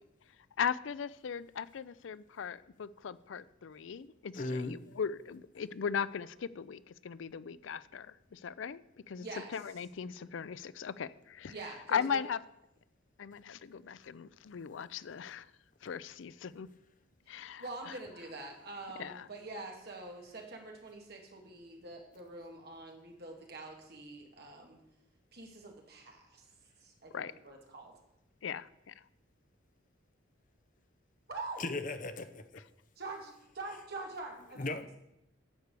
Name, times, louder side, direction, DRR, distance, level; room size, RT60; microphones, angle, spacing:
voice 1, 0.6-8.8 9.1-9.3 9.5-11.5 11.9-12.4 13.2-15.5 15.8-16.7 17.3-17.6 19.0-19.2 27.1-27.3 28.4-28.7, left 7 dB, 70° left, 17 dB, 0.4 m, -38 dB
voice 2, 4.3-4.8 31.6-32.4 34.6-34.9, left 2 dB, 40° left, 10 dB, 0.8 m, -36 dB
voice 3, 9.2-9.6 11.5-12.2 17.4-24.8 25.3-26.4 26.8-27.9 31.3-31.6 33.0-35.0, right 2 dB, 55° right, 1 dB, 2.2 m, -45 dB
11.5 x 4.7 x 8.3 m, 0.83 s
head